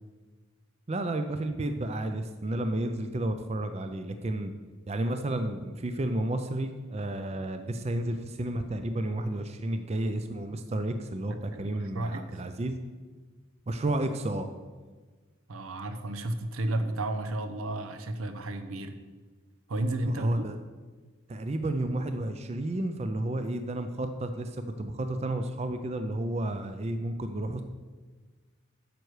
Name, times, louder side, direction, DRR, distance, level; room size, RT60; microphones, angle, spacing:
voice 1, 0.9-4.5 4.9-12.8 13.7-14.5 20.1-20.6 21.3-27.6, right 1 dB, 30° right, 8 dB, 0.4 m, -31 dB
voice 2, 11.3-12.4 15.5-18.9 19.7-20.4, right 1 dB, 85° right, 8 dB, 0.7 m, -32 dB
9.1 x 6.5 x 4.8 m, 1.4 s
head